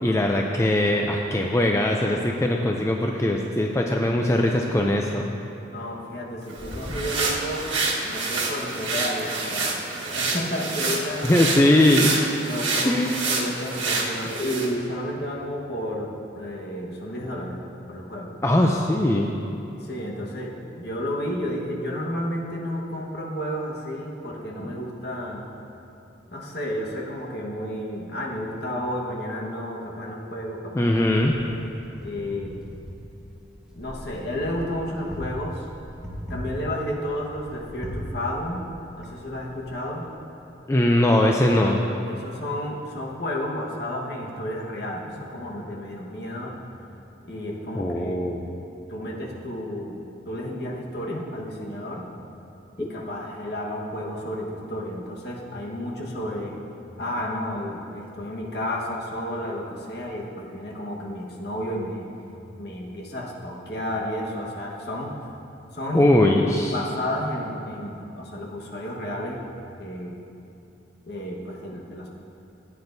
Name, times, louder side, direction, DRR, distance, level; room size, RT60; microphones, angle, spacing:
voice 1, 0.0-5.2 11.2-12.1 12.8-13.2 18.4-19.3 24.6-24.7 30.7-31.3 40.7-41.8 47.7-48.6 51.1-51.2 52.8-52.9 65.9-66.8, left 1 dB, 15° left, 1 dB, 0.4 m, -21 dB
voice 2, 5.7-7.7 8.0-11.3 12.4-16.1 16.3-17.6 17.9-18.3 19.8-25.4 26.3-30.9 32.0-32.6 33.7-35.7 36.3-38.6 39.0-40.1 42.1-46.5 47.2-48.4 48.9-50.0 50.3-52.1 52.8-56.6 57.0-62.1 62.6-65.1 65.7-66.0 66.7-69.4 69.8-70.2 71.1-72.1, equal, 55° left, -2 dB, 1.4 m, -32 dB
sound 1, 6.5-14.7, right 3 dB, 85° right, 1.4 m, -28 dB
Wind, 30.8-39.7, equal, 5° right, 1.3 m, -39 dB
14.5 x 9.6 x 2.7 m, 2.8 s
head